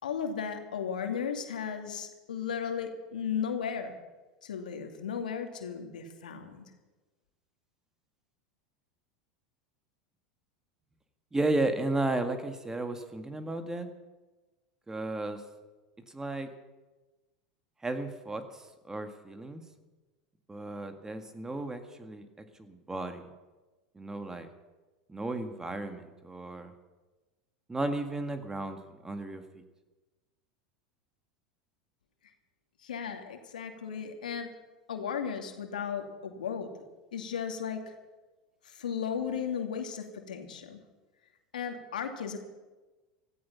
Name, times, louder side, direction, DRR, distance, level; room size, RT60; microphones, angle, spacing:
voice 1, 0.0-3.9 4.4-6.6 32.8-34.5 34.9-36.7 37.1-37.8 38.6-40.8 41.5-42.4, left 7 dB, 85° left, 5 dB, 2.3 m, -35 dB
voice 2, 11.3-13.9 14.9-15.4 16.1-16.5 17.8-19.6 20.5-22.3 22.6-23.3 24.0-24.5 25.1-26.7 27.7-29.6, right 2 dB, 15° right, 8 dB, 1.9 m, -34 dB
16.5 x 14.5 x 5.8 m, 1.2 s
hypercardioid pair, 90°, 4 cm